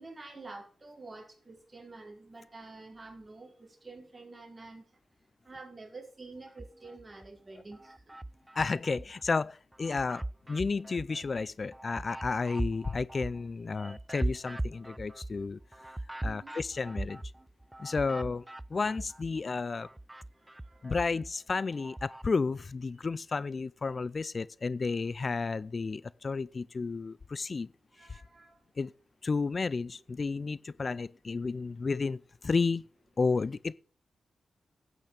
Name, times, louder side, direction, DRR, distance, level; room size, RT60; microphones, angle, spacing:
voice 1, 0.0-4.8 5.4-8.2 13.8-14.0 16.2-16.5 18.2-18.3 20.4-20.8 28.0-28.6, right 3 dB, 30° right, 5.0 m, -49 dB
sound 1, 6.5-7.3 7.7-9.3 9.7-19.4 19.7-22.3, right 1 dB, 15° right, 0.5 m, -40 dB
voice 2, 8.6-15.6 16.2-17.2 17.8-18.4 18.7-19.9 20.8-27.7 28.1-28.2 28.8-28.9 29.2-32.8 33.2-33.7, left 4 dB, 45° left, 0.4 m, -32 dB
12.0 x 9.1 x 5.0 m
cardioid pair, 60°, 0 cm